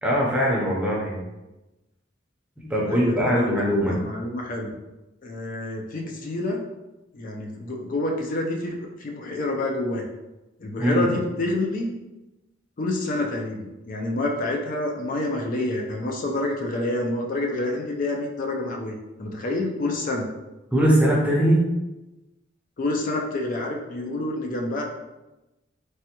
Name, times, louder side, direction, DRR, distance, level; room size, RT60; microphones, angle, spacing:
voice 1, 0.0-1.2 2.7-4.0 10.8-11.1 20.7-21.6, equal, 5° right, -4 dB, 0.6 m, -21 dB
voice 2, 2.6-4.7 5.2-6.6 7.1-10.0 10.6-11.9 12.8-20.3 22.8-24.8, left 2 dB, 45° left, 1 dB, 0.4 m, -28 dB
3.3 x 2.1 x 2.9 m, 1.0 s
head